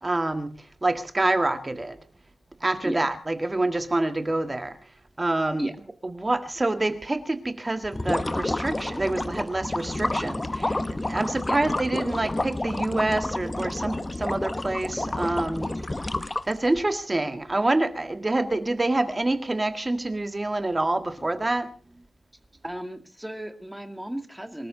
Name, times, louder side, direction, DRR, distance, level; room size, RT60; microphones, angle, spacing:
voice 1, 0.0-0.5 0.8-2.0 2.6-4.8 5.2-5.7 6.0-15.7 16.5-21.7, right 2 dB, 20° right, 8 dB, 1.7 m, -26 dB
sound 1, 7.8-16.8, left 2 dB, 20° left, 0.9 m, -29 dB
voice 2, 22.6-24.7, right 1 dB, 5° right, 7 dB, 2.0 m, -34 dB
25.5 x 13.5 x 3.8 m, 0.35 s
wide cardioid pair, 130°, 0 cm